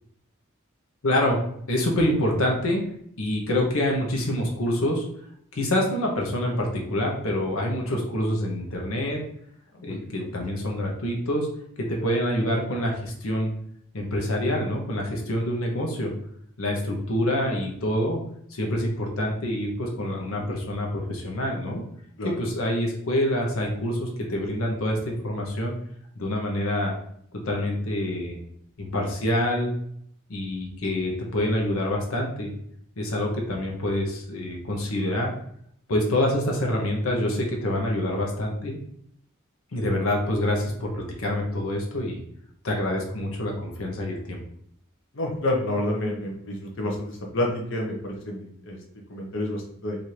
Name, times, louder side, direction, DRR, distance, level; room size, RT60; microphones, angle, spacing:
voice 1, 1.0-1.4 1.7-2.9 3.2-5.0 5.5-9.2 9.8-11.5 11.8-13.5 13.9-16.1 16.6-18.2 18.5-21.8 22.2-25.8 26.2-27.0 27.3-28.4 28.8-29.8 30.3-32.5 33.0-35.3 35.9-38.8 39.7-42.2 42.6-44.4, left 1 dB, 90° left, 0 dB, 0.8 m, -26 dB
voice 2, 9.7-10.3 22.2-22.3 45.1-48.8 49.1-50.0, left 1 dB, 65° left, 0 dB, 0.8 m, -29 dB
3.3 x 2.6 x 4.3 m, 0.67 s
head